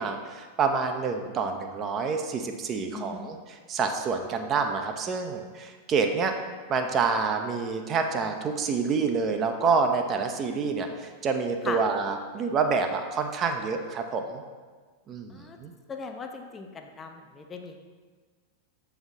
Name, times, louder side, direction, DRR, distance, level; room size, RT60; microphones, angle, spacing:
voice 1, 0.0-6.3 6.7-14.4 15.1-15.7, right 5 dB, 30° right, 5 dB, 0.5 m, -28 dB
voice 2, 2.9-3.3 11.6-11.8 15.3-15.6 15.9-17.8, left 5 dB, 20° left, 4 dB, 0.5 m, -38 dB
6.8 x 4.1 x 4.0 m, 1.5 s
figure-of-eight pair, 90°, 0 cm